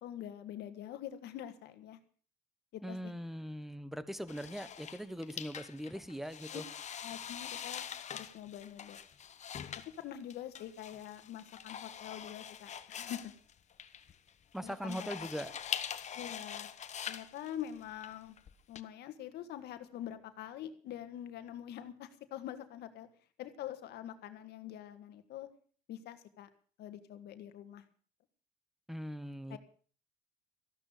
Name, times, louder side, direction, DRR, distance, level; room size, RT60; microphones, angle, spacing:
voice 1, 0.0-2.0 2.7-3.1 6.5-6.6 6.9-7.9 8.1-9.0 10.0-13.2 14.6-15.3 16.1-16.7 17.1-18.4 18.7-23.1 23.4-25.5 25.9-26.5 26.8-27.8 29.5-29.6, left 11 dB, 75° left, 9 dB, 1.8 m, -45 dB
voice 2, 2.8-6.6 14.5-15.6 28.9-29.6, equal, ahead, 15 dB, 1.1 m, -41 dB
sound 1, 4.3-18.8, left 8 dB, 45° left, 1.2 m, -44 dB
14.5 x 12.0 x 6.7 m, 0.44 s
cardioid pair, 110°, 17 cm